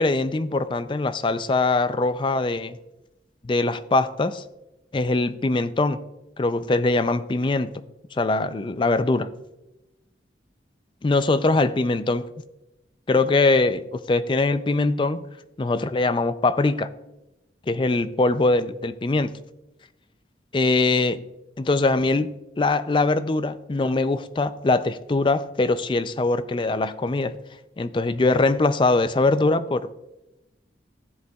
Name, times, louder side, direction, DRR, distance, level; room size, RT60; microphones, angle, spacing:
voice 1, 0.0-2.8 3.4-4.4 4.9-6.0 6.4-7.7 8.1-9.3 11.0-12.3 13.1-15.3 15.6-16.9 17.7-19.3 20.5-21.2 21.6-27.4 27.8-29.9, left 3 dB, 25° left, 0.4 m, -22 dB
14.0 x 7.8 x 2.3 m
head